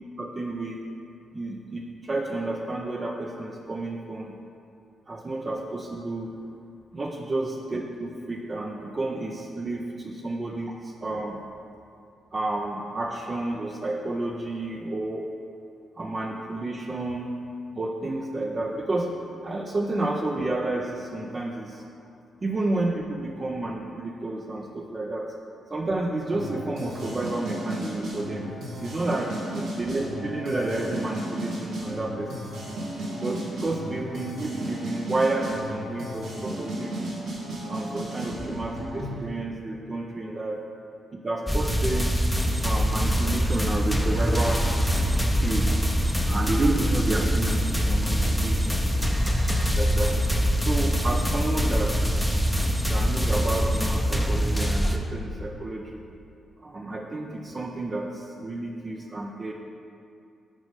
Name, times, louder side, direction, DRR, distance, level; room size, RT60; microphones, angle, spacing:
voice 1, 0.2-0.8 1.3-4.4 5.1-6.3 6.9-11.4 12.3-15.3 16.0-17.3 17.7-19.1 19.4-21.8 22.4-25.3 25.7-28.5 28.8-32.5 33.2-37.1 37.7-40.6 41.1-42.2 42.6-44.6 45.2-45.7 46.3-48.8 49.2-50.1 50.6-52.6 52.9-56.0 56.6-59.5, right 2 dB, 40° right, 0 dB, 0.6 m, -30 dB
sound 1, 26.3-39.2, right 1 dB, 80° right, 1.6 m, -34 dB
sound 2, 41.5-55.0, equal, 5° left, 0.7 m, -24 dB
6.1 x 4.0 x 5.4 m, 2.5 s
supercardioid pair, 50°, 0 cm